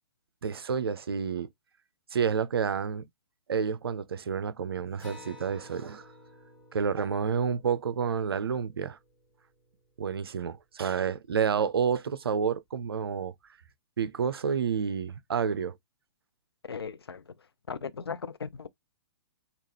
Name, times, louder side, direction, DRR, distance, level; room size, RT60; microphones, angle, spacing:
voice 1, 0.4-1.5 2.1-3.0 3.5-6.0 6.7-9.0 10.0-13.3 14.0-15.7, right 6 dB, 70° right, 0.5 m, -29 dB
Acoustic guitar, 5.0-9.9, left 1 dB, 10° left, 1.8 m, -53 dB
voice 2, 16.7-17.3 17.7-18.7, left 6 dB, 75° left, 0.5 m, -37 dB
3.6 x 2.4 x 3.1 m
figure-of-eight pair, 120°, 13 cm